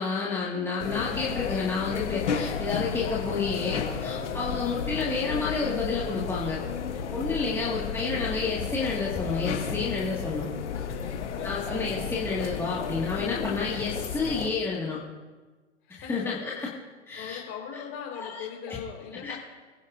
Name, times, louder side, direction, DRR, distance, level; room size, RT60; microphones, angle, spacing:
voice 1, 0.0-6.6 7.1-10.5 11.4-15.0 15.9-16.7 17.1-17.4 18.2-18.4 18.7-18.8 19.2-19.3, left 4 dB, 5° left, -6 dB, 2.0 m, -30 dB
sound 1, 0.8-14.5, left 6 dB, 70° left, 1.8 m, -33 dB
voice 2, 4.4-4.7 7.4-7.7 10.9-11.5 13.5-13.6 15.8-16.3 17.1-19.4, left 8 dB, 35° left, 0 dB, 4.5 m, -41 dB
26.0 x 10.5 x 2.7 m, 1.3 s
hypercardioid pair, 115°, 37 cm